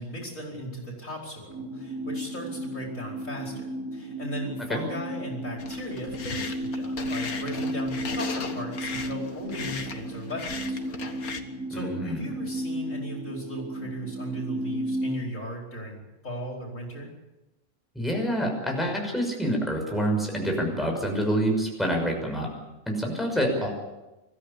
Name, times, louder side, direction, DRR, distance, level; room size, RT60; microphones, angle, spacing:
voice 1, 0.0-3.6 3.9-11.0 11.7-17.1 23.2-23.5, equal, 60° left, -1 dB, 5.3 m, -37 dB
sound 1, 1.5-15.2, right 1 dB, 85° right, 5.0 m, -34 dB
sound 2, 5.6-11.4, left 5 dB, 85° left, 2.0 m, -37 dB
voice 2, 11.7-12.2 17.9-22.5 22.9-23.7, equal, ahead, 0 dB, 6.1 m, -27 dB
25.0 x 14.5 x 8.6 m, 1.0 s
omnidirectional pair, 1.5 m